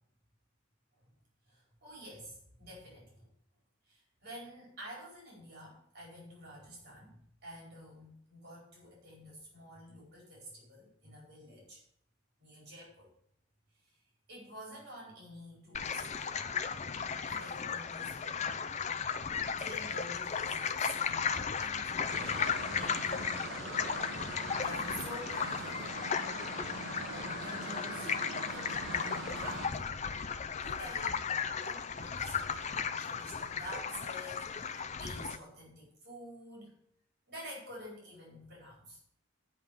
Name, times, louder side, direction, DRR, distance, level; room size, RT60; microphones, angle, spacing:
voice 1, 1.5-3.3 3.8-11.8 12.4-13.1 13.8-13.9 14.3-16.6 17.2-18.2 19.5-22.4 22.8-23.3 24.2-26.0 27.1-28.2 28.4-29.8 30.6-31.3 31.6-36.7 37.3-39.0, equal, 50° right, -4 dB, 4.6 m, -49 dB
sound 1, 15.7-35.4, left 6 dB, 35° left, 0.5 m, -35 dB
sound 2, 22.1-29.7, right 2 dB, 65° right, 1.3 m, -42 dB
9.1 x 5.7 x 8.2 m, 0.68 s
head